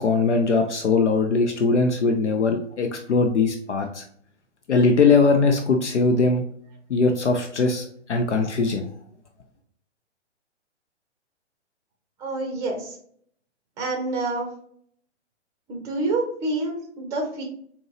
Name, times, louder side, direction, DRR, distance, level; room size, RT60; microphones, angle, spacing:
voice 1, 0.0-4.0 4.7-6.4 6.9-8.9, left 4 dB, 75° left, 4 dB, 0.6 m, -21 dB
voice 2, 12.2-13.0 13.8-14.5 15.7-17.4, right 2 dB, 10° right, 1 dB, 0.6 m, -27 dB
4.4 x 2.8 x 2.9 m, 0.63 s
figure-of-eight pair, 125°, 35 cm